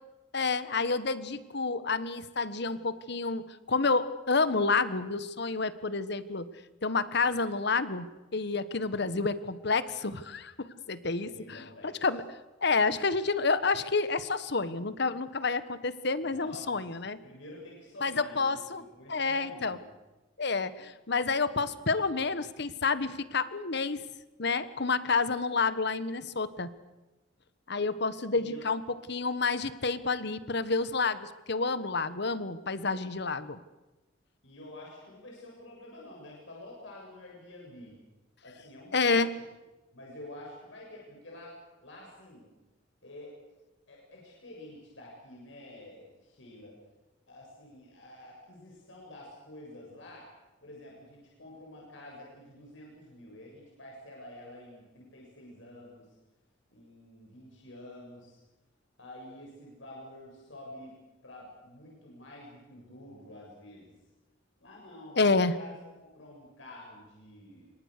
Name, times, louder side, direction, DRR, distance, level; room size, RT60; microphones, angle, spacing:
voice 1, 0.3-6.5 6.8-12.2 12.6-17.2 18.0-18.8 19.1-19.8 20.4-24.0 24.4-26.7 27.7-28.8 29.1-33.6 38.9-39.3 65.2-65.5, left 4 dB, 65° left, 14 dB, 1.4 m, -29 dB
voice 2, 11.2-12.1 16.2-16.9 17.2-19.9 28.3-28.7 34.4-38.0 38.4-39.4 39.9-41.6 41.8-42.5 43.0-43.4 43.9-46.8 47.3-50.3 50.6-56.1 56.7-58.4 59.0-60.9 61.2-63.9 64.6-67.7, left 1 dB, 80° left, -2 dB, 7.4 m, -49 dB
28.0 x 24.5 x 6.8 m, 1.1 s
head